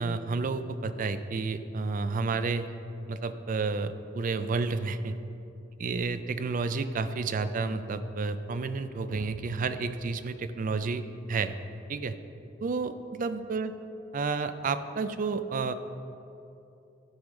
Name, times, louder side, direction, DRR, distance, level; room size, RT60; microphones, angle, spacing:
voice 1, 0.0-2.7 3.1-5.2 5.8-11.6 11.9-12.2 12.6-13.7 14.1-15.7, right 4 dB, 45° right, 11 dB, 0.4 m, -31 dB
12.0 x 4.8 x 5.1 m, 2.7 s
head